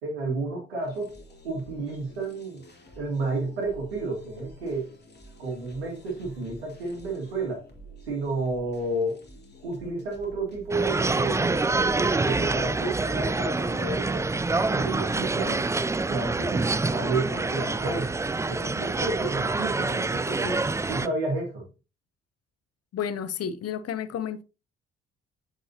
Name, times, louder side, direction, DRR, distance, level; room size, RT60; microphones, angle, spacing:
voice 1, 0.0-1.2 1.4-2.6 3.0-4.9 5.4-7.6 8.0-9.2 9.6-15.6 16.1-18.1 18.5-20.6 20.9-21.7, right 2 dB, 85° right, 2.3 m, -31 dB
sound 1, 0.8-15.5, equal, 35° left, 2.7 m, -50 dB
sound 2, 10.7-21.1, right 3 dB, 10° right, 0.4 m, -26 dB
voice 2, 22.9-24.4, left 8 dB, 55° left, 0.9 m, -31 dB
7.9 x 6.0 x 2.9 m
hypercardioid pair, 45°, 30 cm